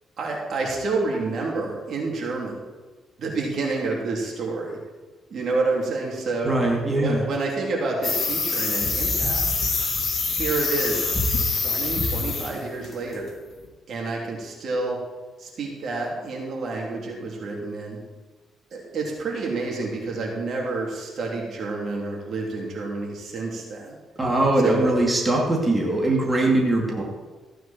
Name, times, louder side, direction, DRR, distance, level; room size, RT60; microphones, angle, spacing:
voice 1, 0.2-2.5 3.2-4.7 5.3-6.5 7.0-9.6 10.3-11.2 11.5-13.3 13.9-15.0 15.4-18.0 18.7-24.0 24.6-24.9, right 3 dB, 60° right, -1 dB, 3.4 m, -29 dB
voice 2, 6.4-7.2 24.2-27.0, right 2 dB, 15° right, -2 dB, 2.6 m, -21 dB
sound 1, 8.0-12.6 12.8-13.1, left 3 dB, 40° left, 3.2 m, -25 dB
15.5 x 9.2 x 4.5 m, 1.3 s
cardioid pair, 90°, 0 cm